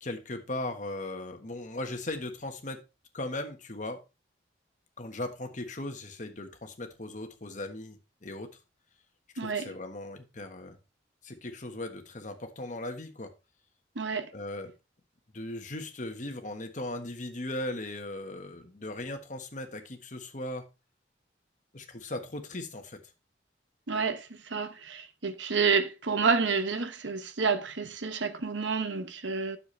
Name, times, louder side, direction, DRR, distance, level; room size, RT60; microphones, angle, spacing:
voice 1, 0.0-2.8 3.1-4.0 5.0-8.5 9.4-10.8 11.2-13.3 14.3-14.7 15.3-20.6 21.7-23.0, left 1 dB, 40° left, 1.4 m, -38 dB
voice 2, 9.4-9.7 14.0-14.3 23.9-29.6, right 5 dB, 80° right, 1.0 m, -29 dB
9.5 x 7.0 x 3.2 m
head